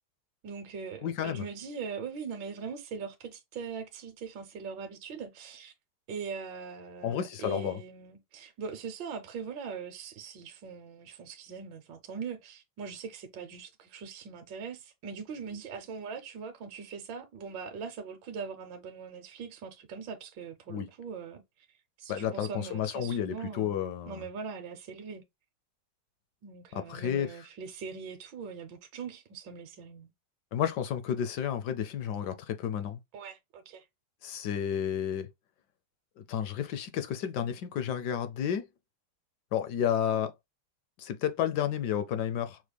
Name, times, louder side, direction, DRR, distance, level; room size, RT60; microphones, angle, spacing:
voice 1, 0.4-5.7 6.1-21.7 22.0-25.2 26.4-30.1 33.1-33.9, right 5 dB, 70° right, 1.4 m, -41 dB
voice 2, 1.0-1.5 7.0-7.8 20.7-20.9 22.1-24.3 26.7-27.4 30.5-33.0 34.2-35.3 36.2-38.6 39.5-40.3 41.0-42.6, left 9 dB, 70° left, 1.0 m, -31 dB
6.2 x 2.1 x 3.4 m
omnidirectional pair, 2.3 m